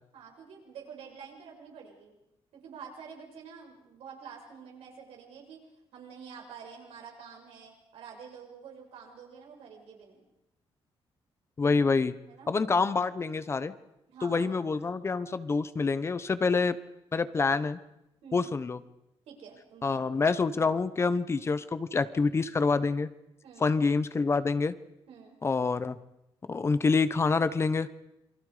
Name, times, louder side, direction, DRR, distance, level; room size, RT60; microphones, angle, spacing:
voice 1, 0.1-2.1 2.5-5.6 5.9-10.2 12.3-12.5 14.1-14.5 18.2-18.5 19.3-20.1 23.4-23.7 25.1-25.4, right 6 dB, 90° right, 0 dB, 6.7 m, -48 dB
voice 2, 11.6-12.2 12.5-13.7 14.2-16.8 17.1-17.8 18.3-18.8 19.8-23.1 23.6-24.7 25.4-26.0 26.5-27.9, left 4 dB, 25° left, 14 dB, 0.9 m, -27 dB
27.5 x 24.0 x 5.0 m, 0.88 s
cardioid pair, 145°, 10 cm